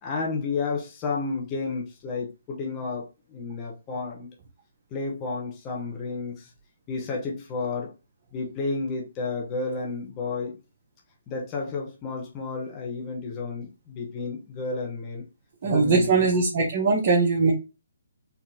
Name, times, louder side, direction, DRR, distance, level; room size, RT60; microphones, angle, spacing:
voice 1, 0.0-4.3 4.9-6.5 6.9-7.9 8.3-10.6 11.3-15.2 15.6-16.3, left 4 dB, 20° left, 0.9 m, -31 dB
voice 2, 15.6-17.5, right 4 dB, 40° right, 1.0 m, -21 dB
4.5 x 2.8 x 2.7 m
hypercardioid pair, 155°, 0 cm